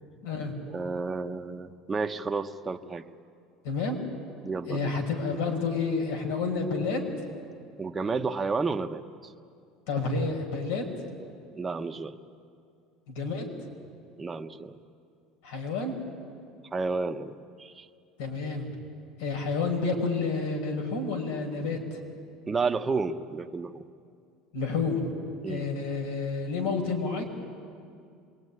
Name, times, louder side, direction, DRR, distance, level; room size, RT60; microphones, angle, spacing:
voice 1, 0.2-0.5 3.6-4.0 4.7-7.0 9.9-10.9 13.1-13.5 15.4-15.9 18.2-18.7 19.2-21.8 24.5-25.0 25.5-27.2, left 4 dB, 85° left, 3 dB, 5.5 m, -29 dB
voice 2, 0.7-3.0 4.4-5.0 7.8-9.0 11.6-12.2 14.2-14.8 16.7-17.9 22.5-23.8 25.4-25.7, right 4 dB, 15° right, 6 dB, 1.0 m, -31 dB
26.5 x 22.5 x 9.8 m, 2.4 s
cardioid pair, 140°, 0 cm